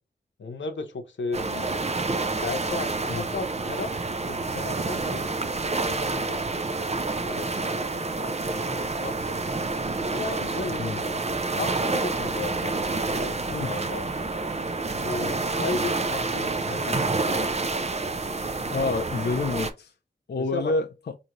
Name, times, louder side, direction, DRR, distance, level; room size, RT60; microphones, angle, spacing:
voice 1, 0.4-1.9 2.4-3.9 4.2-5.4 5.9-6.5 7.2-9.5 10.1-11.2 11.5-12.7 13.0-14.1 15.0-17.5 20.4-20.7, left 3 dB, 90° left, 0.7 m, -35 dB
sound 1, 1.3-19.7, right 3 dB, 35° right, 0.5 m, -28 dB
voice 2, 18.7-19.9 20.3-21.1, left 3 dB, 65° left, 0.4 m, -28 dB
5.0 x 2.7 x 2.9 m
wide cardioid pair, 55°, 19 cm